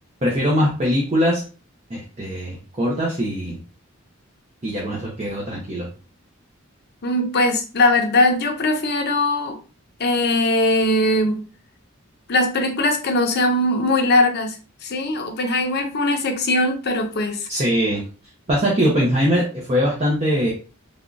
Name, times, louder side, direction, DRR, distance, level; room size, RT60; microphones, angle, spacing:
voice 1, 0.2-1.4 1.9-3.6 4.6-5.9 17.5-18.0 18.5-20.5, equal, 30° right, -4 dB, 0.8 m, -21 dB
voice 2, 7.0-9.6 10.0-11.4 12.3-14.6 14.8-17.5, left 2 dB, 50° left, 4 dB, 0.7 m, -20 dB
3.5 x 2.3 x 2.5 m, 0.35 s
head